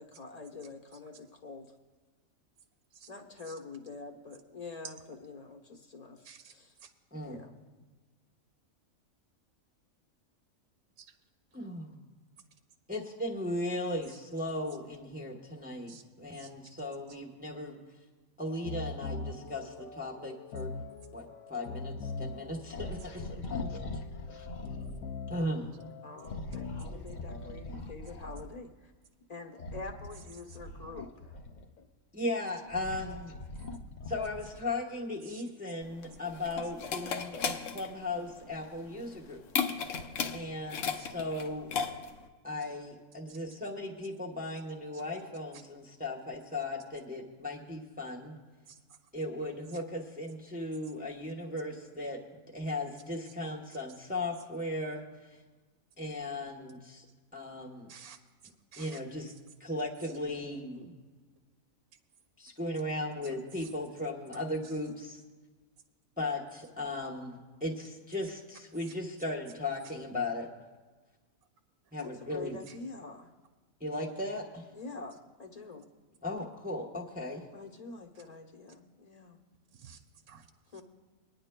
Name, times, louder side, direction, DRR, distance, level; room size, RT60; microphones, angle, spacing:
voice 1, 0.0-1.7 3.1-6.7 7.3-7.5 26.0-28.9 29.3-31.4 72.0-73.3 74.7-75.9 77.5-79.4 80.7-80.8, left 3 dB, 35° left, 4 dB, 0.9 m, -46 dB
voice 2, 11.5-12.0 12.9-17.8 18.4-20.7 21.1-23.9 25.3-25.7 32.1-33.4 34.1-39.4 40.3-41.7 42.4-48.4 49.1-52.2 52.5-55.4 56.0-57.0 57.3-57.9 58.8-59.3 59.6-60.9 62.4-65.2 66.2-70.5 71.9-72.6 73.8-74.7 76.2-77.4, left 1 dB, 10° right, -1 dB, 0.8 m, -37 dB
sound 1, 18.5-27.7, left 4 dB, 90° left, 1.1 m, -42 dB
sound 2, 22.7-25.1 26.2-28.6 29.5-31.8 32.4-34.8, left 2 dB, 50° left, 0.5 m, -42 dB
sound 3, 35.8-42.3, left 6 dB, 70° left, 1.0 m, -35 dB
voice 3, 43.3-43.6 44.9-45.0 45.5-45.6 48.7-49.0 49.4-49.5 49.7-49.8 57.9-58.2 58.7-59.0 60.0-60.1 63.2-63.7 64.3-64.8 68.8-68.9 72.7-72.8 79.7-80.8, right 7 dB, 65° right, 6 dB, 0.9 m, -53 dB
24.0 x 9.9 x 2.2 m, 1.3 s
omnidirectional pair, 1.4 m